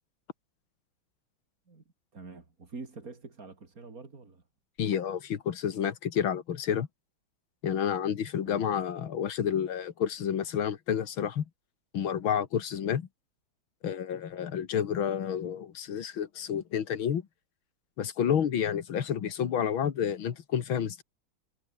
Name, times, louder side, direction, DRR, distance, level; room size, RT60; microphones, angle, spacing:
voice 1, 2.1-4.4 8.4-8.7, right 4 dB, 45° right, 3.6 m, -46 dB
voice 2, 4.8-6.9 7.6-11.5 11.9-13.1 13.8-17.2 18.0-21.0, left 8 dB, 85° left, 2.4 m, -30 dB
omnidirectional pair, 2.2 m